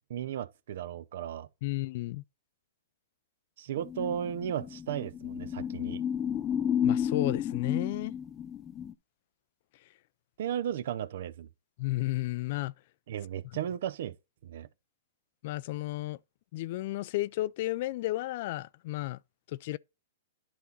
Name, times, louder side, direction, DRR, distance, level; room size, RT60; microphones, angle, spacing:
voice 1, 0.1-1.5 3.6-6.0 10.4-11.5 13.1-14.1 14.4-14.7, right 10 dB, 65° right, 0.6 m, -35 dB
voice 2, 1.6-2.2 6.8-8.2 11.8-12.7 15.4-16.2 16.5-19.2 19.6-19.8, left 17 dB, 50° left, 0.3 m, -32 dB
sound 1, 3.8-8.9, left 8 dB, 20° left, 0.7 m, -32 dB
10.5 x 4.1 x 4.0 m
hypercardioid pair, 135°, 0 cm